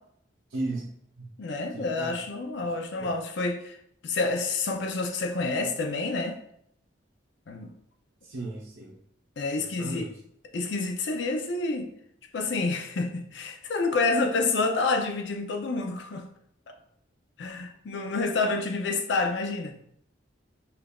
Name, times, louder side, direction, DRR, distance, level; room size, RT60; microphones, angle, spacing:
voice 1, 0.5-0.8 1.2-1.3 1.7-2.2 2.6-2.7 3.0-3.1 8.2-9.0 9.6-10.2, right 2 dB, 85° right, -5 dB, 0.7 m, -36 dB
voice 2, 1.4-3.8 4.0-6.4 7.5-7.7 9.4-10.1 10.5-11.9 12.3-16.3 16.7-16.8 17.4-19.7, left 3 dB, 65° left, 5 dB, 0.5 m, -28 dB
5.1 x 2.4 x 2.3 m, 0.72 s
head